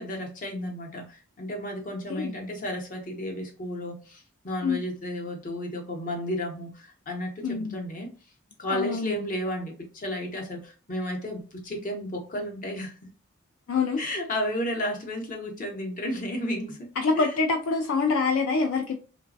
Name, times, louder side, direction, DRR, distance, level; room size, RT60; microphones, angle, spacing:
voice 1, 0.0-8.1 8.6-13.1 14.0-17.5, left 1 dB, 40° left, 2 dB, 0.8 m, -33 dB
voice 2, 7.4-7.8 8.7-9.2 13.7-14.0 17.0-18.9, left 4 dB, 65° left, 4 dB, 0.3 m, -25 dB
3.0 x 2.2 x 2.5 m, 0.36 s
head